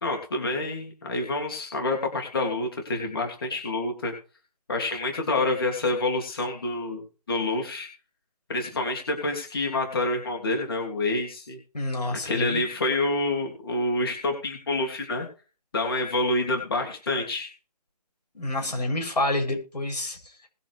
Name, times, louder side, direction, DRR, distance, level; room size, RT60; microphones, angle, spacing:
voice 1, 0.0-4.1 4.7-7.0 7.3-7.9 8.5-11.6 12.1-15.3 15.7-17.5, left 2 dB, 35° left, 1 dB, 3.0 m, -27 dB
voice 2, 11.7-12.6 18.3-20.5, left 1 dB, 90° left, 3 dB, 7.9 m, -28 dB
20.5 x 7.3 x 3.3 m, 0.35 s
hypercardioid pair, 180°, 21 cm